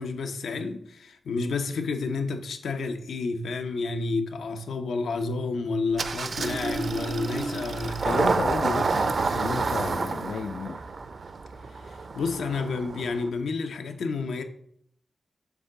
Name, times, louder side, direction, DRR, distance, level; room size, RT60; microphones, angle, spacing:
voice 1, 0.0-8.3 11.9-14.4, left 3 dB, 90° left, 0.8 m, -30 dB
Engine starting, 6.0-13.3, right 4 dB, 45° right, 0.4 m, -29 dB
voice 2, 8.0-10.8, left 6 dB, 75° left, 0.3 m, -33 dB
7.1 x 3.8 x 6.5 m
wide cardioid pair, 170°, 0 cm